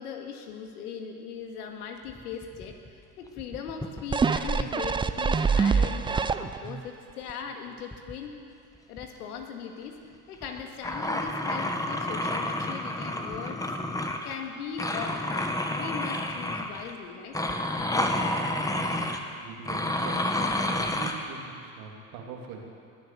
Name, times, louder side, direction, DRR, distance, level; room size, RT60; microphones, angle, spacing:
voice 1, 0.0-8.3 8.9-10.0 10.3-13.6 14.2-17.4, left 7 dB, 80° left, 4 dB, 2.0 m, -39 dB
sound 1, 2.1-3.0 3.2-4.3 5.7-6.2 7.9-8.1 8.8-9.0 9.4-9.5 10.4-14.5 14.8-16.9 17.3-19.2 19.7-21.1, left 1 dB, 10° left, 1.4 m, -30 dB
sound 2, 4.1-6.8 7.3-7.4, right 5 dB, 10° right, 0.4 m, -25 dB
voice 2, 18.7-19.1 19.4-20.2 20.8-22.7, right 5 dB, 70° right, 0 dB, 2.9 m, -43 dB
20.0 x 9.3 x 6.9 m, 2.3 s
hypercardioid pair, 80°, 45 cm